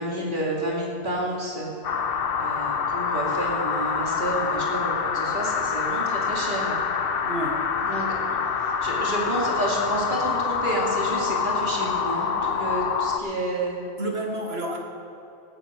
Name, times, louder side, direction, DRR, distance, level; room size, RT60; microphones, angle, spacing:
voice 1, 0.0-1.7 2.4-6.8 7.8-8.1 8.6-13.8, right 1 dB, 50° right, -3 dB, 2.8 m, -29 dB
sound 1, 1.8-13.2, left 6 dB, 65° left, 1.0 m, -26 dB
voice 2, 7.2-7.6 8.3-8.4 14.0-14.8, right 1 dB, 80° right, 1 dB, 2.0 m, -30 dB
17.0 x 7.6 x 6.2 m, 2.9 s
omnidirectional pair, 1.1 m